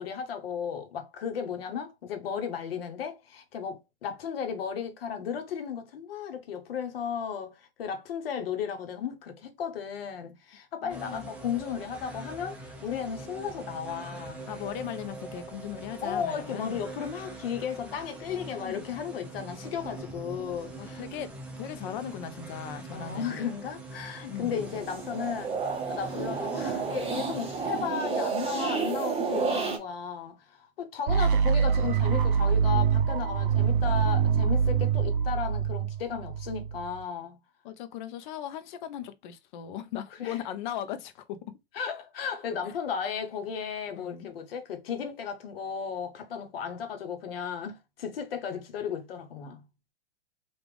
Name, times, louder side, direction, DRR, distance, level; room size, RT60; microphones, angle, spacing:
voice 1, 0.0-14.4 16.0-21.0 22.9-25.6 25.9-37.4 40.1-40.4 41.7-49.6, left 7 dB, 70° left, 1.0 m, -35 dB
voice 2, 10.8-11.3 14.5-16.8 17.9-18.0 18.6-18.8 20.8-21.3 21.6-23.5 24.3-24.7 37.6-41.4 44.0-44.3, left 10 dB, 50° left, 0.6 m, -38 dB
sound 1, 10.9-27.9, right 2 dB, 5° right, 0.5 m, -43 dB
sound 2, 24.5-29.8, right 5 dB, 20° right, 1.0 m, -31 dB
sound 3, 31.1-37.0, right 7 dB, 55° right, 0.5 m, -25 dB
3.4 x 2.4 x 3.4 m
hypercardioid pair, 125°, 31 cm